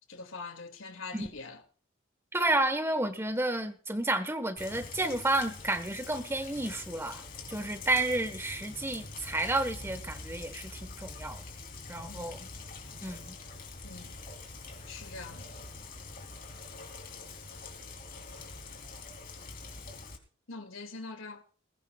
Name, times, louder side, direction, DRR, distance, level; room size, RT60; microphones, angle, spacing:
voice 1, 0.1-1.6 12.1-12.3 13.8-14.2 14.9-15.5 20.5-21.4, left 4 dB, 75° left, 2.5 m, -43 dB
voice 2, 2.3-7.2 7.5-11.4 11.9-12.4 13.0-13.4, right 2 dB, 10° right, 1.4 m, -31 dB
Rain, 4.6-20.2, left 3 dB, 45° left, 3.6 m, -45 dB
21.5 x 20.0 x 2.5 m
head